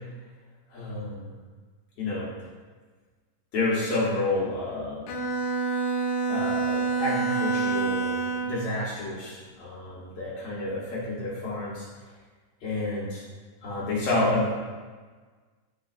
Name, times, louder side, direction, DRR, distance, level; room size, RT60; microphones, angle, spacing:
voice 1, 0.7-1.3 2.0-2.3 3.5-5.1 6.3-11.9 12.6-13.2 13.6-14.5, left 2 dB, 70° left, -6 dB, 1.6 m, -30 dB
Bowed string instrument, 5.1-8.7, right 4 dB, 90° left, 1.9 m, -27 dB
8.6 x 5.3 x 2.4 m, 1.4 s
omnidirectional pair, 4.3 m